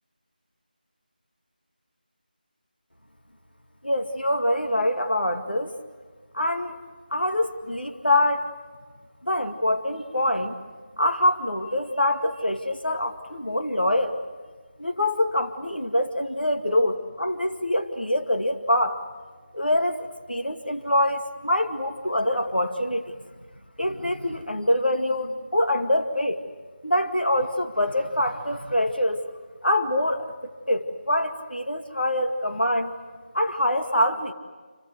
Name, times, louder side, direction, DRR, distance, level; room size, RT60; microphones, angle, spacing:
voice 1, 3.8-5.7 6.3-6.8 7.1-8.5 9.2-10.6 11.0-14.2 14.8-19.0 19.5-23.2 23.8-26.4 26.8-29.2 29.6-32.9 33.3-34.3, left 1 dB, 80° left, 5 dB, 2.2 m, -25 dB
28.5 x 26.0 x 8.1 m, 1.5 s
figure-of-eight pair, 165°, 5 cm